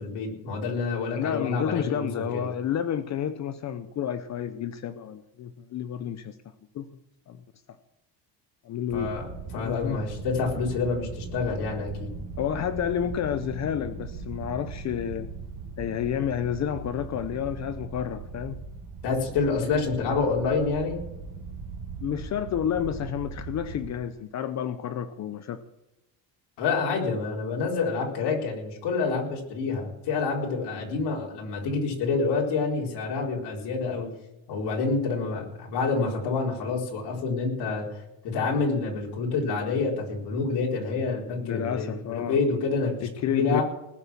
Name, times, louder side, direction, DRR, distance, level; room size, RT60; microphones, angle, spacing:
voice 1, 0.0-2.4 8.9-9.3 9.5-12.1 19.0-21.0 26.6-34.1 34.5-37.9 38.2-43.6, left 4 dB, 70° left, -2 dB, 4.4 m, -27 dB
voice 2, 1.2-6.3 6.7-6.9 7.3-7.4 8.6-9.1 9.5-10.0 12.4-15.3 15.8-18.6 22.0-25.6 41.4-42.4 43.0-43.6, left 9 dB, 40° left, 11 dB, 0.7 m, -30 dB
sound 1, 8.9-23.9, right 4 dB, 70° right, 3.5 m, -39 dB
19.5 x 7.0 x 7.4 m, 0.94 s
cardioid pair, 160°, 42 cm